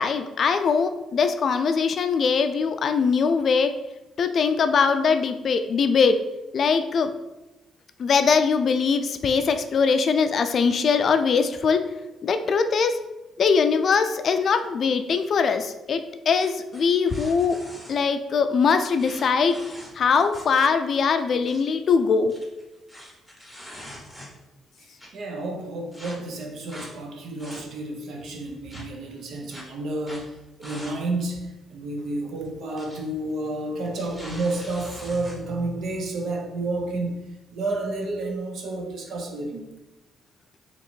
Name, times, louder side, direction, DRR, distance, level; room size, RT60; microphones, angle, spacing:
voice 1, 0.0-3.7 4.2-6.2 6.5-7.1 8.0-11.8 12.2-13.0 13.4-17.6 17.9-19.6 20.0-22.3, left 5 dB, 55° left, 9 dB, 0.3 m, -21 dB
sound 1, 16.4-17.9 18.9-20.6 20.9-21.0 21.3-21.6 22.2-24.5 25.0-25.1 25.9-26.1 26.7-26.9 27.3-27.9 28.7-28.8 29.5-29.6 30.0-30.2 30.6-31.0 31.3-31.4 32.4-33.0 33.3-33.5 33.9-35.4, equal, 5° right, 1.1 m, -43 dB
voice 2, 24.8-37.2 37.5-39.7, right 2 dB, 70° right, 2 dB, 0.7 m, -31 dB
2.9 x 2.7 x 4.2 m, 1.0 s
cardioid pair, 90°, 0 cm